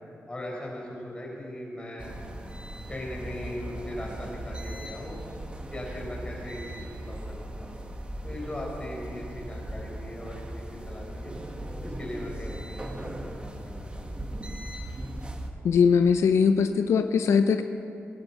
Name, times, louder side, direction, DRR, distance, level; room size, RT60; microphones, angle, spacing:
voice 1, 0.3-2.1 2.9-5.2 5.7-7.8 8.2-11.3 11.8-14.2, left 1 dB, 20° left, -3 dB, 5.0 m, -39 dB
sound 1, 2.0-15.5, right 1 dB, 25° right, 1.5 m, -38 dB
voice 2, 15.6-17.6, left 6 dB, 90° left, 8 dB, 0.6 m, -21 dB
20.5 x 11.5 x 5.6 m, 2.6 s
cardioid pair, 90°, 5 cm